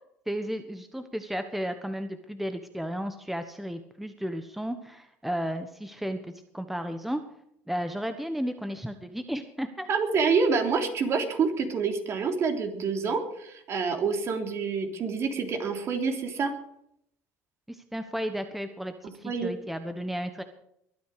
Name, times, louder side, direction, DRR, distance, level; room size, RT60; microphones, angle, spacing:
voice 1, 0.3-6.2 6.5-7.2 7.7-9.9 17.7-20.4, equal, 5° right, 8 dB, 1.3 m, -33 dB
voice 2, 9.9-16.5 19.2-19.5, right 5 dB, 50° right, 4 dB, 3.5 m, -27 dB
22.5 x 9.4 x 5.0 m, 0.73 s
supercardioid pair, 95°, 6 cm